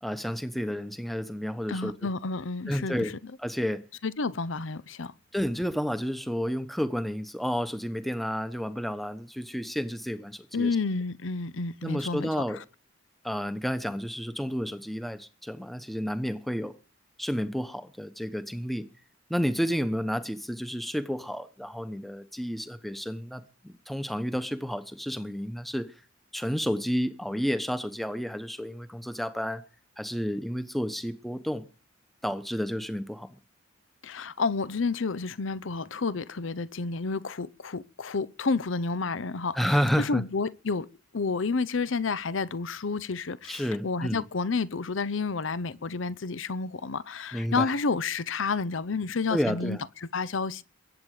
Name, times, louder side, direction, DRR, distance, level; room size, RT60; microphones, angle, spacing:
voice 1, 0.0-1.9 2.7-3.1 3.4-3.8 5.3-10.7 11.8-12.6 13.2-16.7 17.2-18.9 19.3-25.9 26.3-29.6 30.0-31.7 32.2-33.3 39.5-40.2 43.5-44.2 47.3-47.7 49.3-49.8, equal, ahead, 1.0 m, -31 dB
voice 2, 1.7-3.3 4.0-5.1 10.5-12.6 34.0-40.9 41.1-50.6, left 4 dB, 75° left, 0.8 m, -30 dB
22.0 x 8.8 x 4.9 m
head